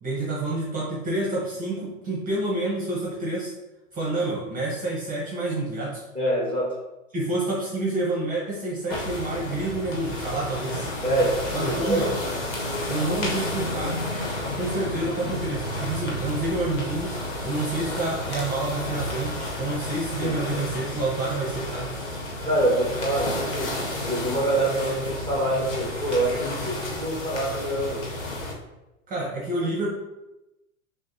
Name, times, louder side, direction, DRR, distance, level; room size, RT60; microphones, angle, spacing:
voice 1, 0.0-3.5 3.9-6.0 7.1-10.9 11.5-12.1 12.9-14.0 14.6-17.2 17.4-21.9 29.1-29.9, right 2 dB, 20° right, -4 dB, 0.9 m, -28 dB
voice 2, 6.1-6.7 11.0-12.1 20.2-20.3 22.4-23.7 24.1-28.0, right 1 dB, 10° left, -4 dB, 1.3 m, -25 dB
sound 1, 8.9-28.5, left 1 dB, 60° left, 1.3 m, -31 dB
6.2 x 2.2 x 2.7 m, 0.98 s
figure-of-eight pair, 100°, 42 cm